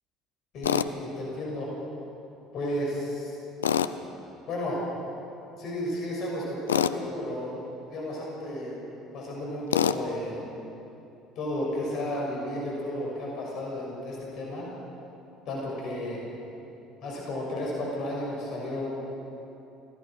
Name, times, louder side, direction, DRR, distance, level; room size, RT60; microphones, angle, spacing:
voice 1, 0.5-1.7 2.5-3.3 4.5-4.8 5.6-8.8 9.1-10.4 11.4-14.7 15.5-16.2 17.0-18.9, left 1 dB, 55° left, -2 dB, 6.1 m, -33 dB
Tools, 0.6-0.9 3.6-4.0 6.7-7.0 9.7-10.0, left 9 dB, 85° left, 0.5 m, -24 dB
25.5 x 17.5 x 6.2 m, 2.9 s
figure-of-eight pair, 60°, 0 cm